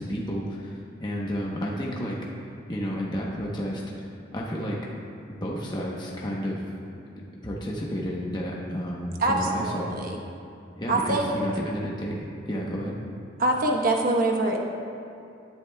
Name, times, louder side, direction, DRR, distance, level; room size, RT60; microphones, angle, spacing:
voice 1, 0.0-2.2 2.7-4.1 4.3-4.8 5.4-6.6 7.4-9.9 10.7-12.1 12.5-13.0, equal, 20° left, -3 dB, 0.9 m, -31 dB
voice 2, 9.2-10.2 10.9-11.4 13.4-14.6, right 2 dB, 45° right, 0 dB, 1.1 m, -24 dB
18.0 x 8.6 x 2.3 m, 2.6 s
head